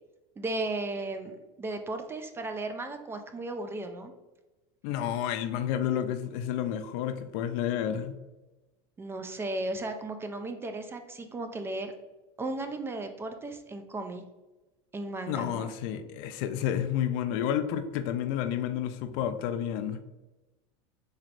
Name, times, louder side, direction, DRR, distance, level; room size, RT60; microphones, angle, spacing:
voice 1, 0.4-4.1 9.0-11.9 12.4-14.2 14.9-15.7, right 2 dB, 15° right, 7 dB, 0.3 m, -35 dB
voice 2, 4.8-8.2 15.3-20.0, left 10 dB, 65° left, 9 dB, 0.4 m, -30 dB
3.9 x 3.2 x 2.5 m, 1.1 s
supercardioid pair, 130°, 14 cm